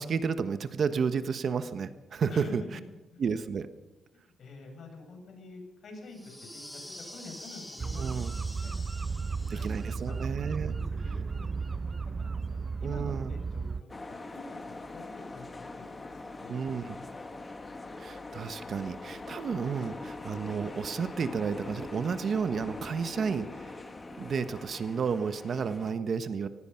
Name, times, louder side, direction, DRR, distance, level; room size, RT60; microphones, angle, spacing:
voice 1, 0.0-2.6 3.2-3.7 8.0-8.3 9.5-10.8 12.8-13.3 16.5-17.0 18.0-23.8 24.2-26.5, right 6 dB, 55° right, 11 dB, 1.3 m, -32 dB
voice 2, 4.4-8.7 8.9-11.8 12.2-16.5 17.0-17.3, left 3 dB, 60° left, 3 dB, 7.8 m, -48 dB
sound 1, 6.1-10.1, left 1 dB, 5° left, 2.9 m, -47 dB
sound 2, 7.8-13.8, right 4 dB, 30° right, 0.6 m, -34 dB
sound 3, 13.9-25.9, left 2 dB, 25° left, 2.1 m, -42 dB
24.0 x 18.5 x 5.9 m, 1.1 s
cardioid pair, 100°, 0 cm